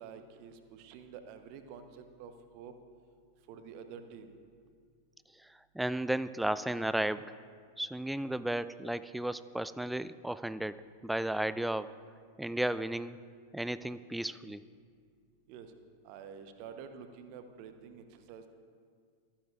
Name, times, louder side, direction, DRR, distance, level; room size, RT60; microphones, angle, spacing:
voice 1, 0.0-2.7 3.5-4.4 15.5-15.7 16.0-18.5, right 7 dB, 45° right, 8 dB, 0.9 m, -48 dB
voice 2, 5.7-7.3 7.8-10.8 11.0-11.9 12.4-13.2 13.5-14.6, right 1 dB, 5° right, 15 dB, 0.3 m, -34 dB
26.0 x 10.0 x 2.4 m, 2.1 s
figure-of-eight pair, 90°, 0 cm